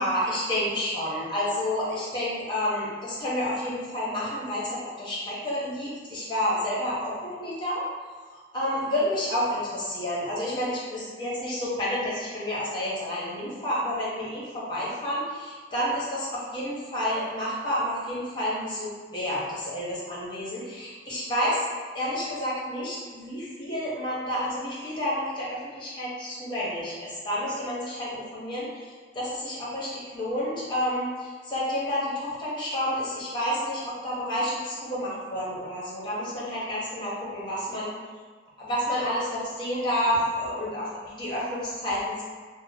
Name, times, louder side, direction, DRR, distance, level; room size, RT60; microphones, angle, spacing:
voice 1, 0.0-7.9 8.3-21.6 21.9-37.9 38.6-42.2, equal, 25° left, -7 dB, 0.9 m, -30 dB
2.8 x 2.1 x 4.0 m, 1.5 s
head